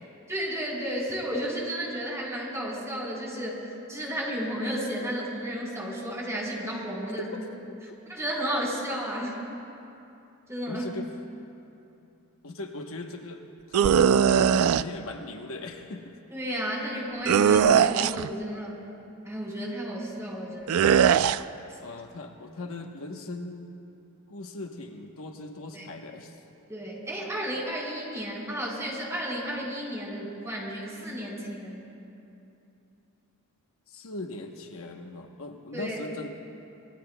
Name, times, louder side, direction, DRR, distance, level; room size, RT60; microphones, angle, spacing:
voice 1, 0.3-7.3 8.1-9.3 10.5-10.9 16.3-18.8 19.2-20.9 25.7-25.9 26.7-31.8 35.7-36.0, equal, 15° right, -4 dB, 4.1 m, -33 dB
voice 2, 7.1-7.8 10.7-11.1 12.4-13.4 13.7-16.1 21.8-23.7 24.3-26.4 33.9-36.3, left 2 dB, 65° left, 3 dB, 1.0 m, -39 dB
sound 1, 13.7-14.8 17.3-18.3 20.7-21.4, right 8 dB, 65° right, 0.3 m, -20 dB
26.5 x 20.0 x 2.2 m, 2.8 s
head